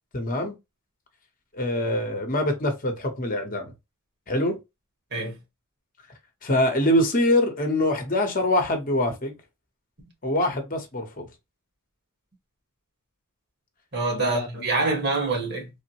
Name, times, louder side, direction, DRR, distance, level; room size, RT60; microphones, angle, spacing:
voice 1, 0.1-0.5 1.5-3.7 4.3-4.6 6.4-9.4 10.2-11.2 14.2-14.5, left 1 dB, 40° left, 0.9 m, -24 dB
voice 2, 13.9-15.7, right 3 dB, 50° right, 1.4 m, -25 dB
3.4 x 2.1 x 2.8 m
head